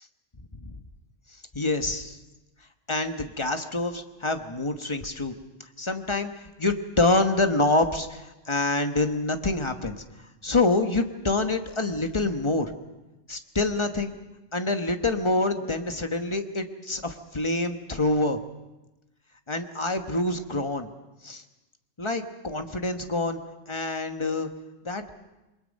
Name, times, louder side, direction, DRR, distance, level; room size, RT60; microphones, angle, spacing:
voice 1, 1.5-2.2 2.9-5.3 5.8-10.0 10.4-12.7 13.3-14.1 14.5-18.4 19.5-20.9 21.2-21.4 22.0-23.4 23.7-24.5 24.8-25.0, left 2 dB, 25° left, 7 dB, 1.2 m, -26 dB
28.0 x 22.0 x 5.4 m, 1.0 s
omnidirectional pair, 1.3 m